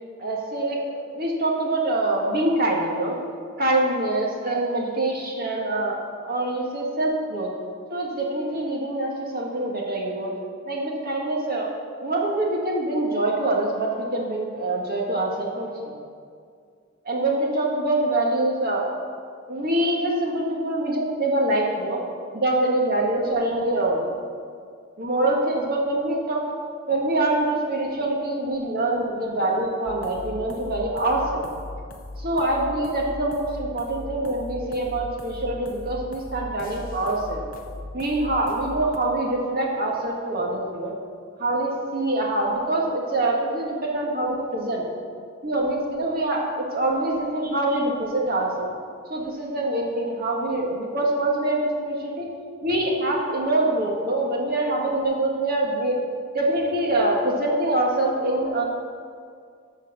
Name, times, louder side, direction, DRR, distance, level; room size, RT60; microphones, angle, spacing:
voice 1, 0.2-3.2 3.6-7.5 7.9-10.3 10.7-11.7 12.0-15.9 17.1-18.9 19.5-22.0 22.3-24.0 25.0-26.4 26.9-31.5 32.2-37.4 37.9-40.9 41.4-44.9 45.4-48.7 49.1-52.3 52.6-56.0 56.3-58.6, right 1 dB, 45° right, -1 dB, 1.8 m, -25 dB
sound 1, 29.9-39.0, left 2 dB, 45° left, 0.9 m, -38 dB
13.0 x 4.6 x 6.7 m, 2.2 s
head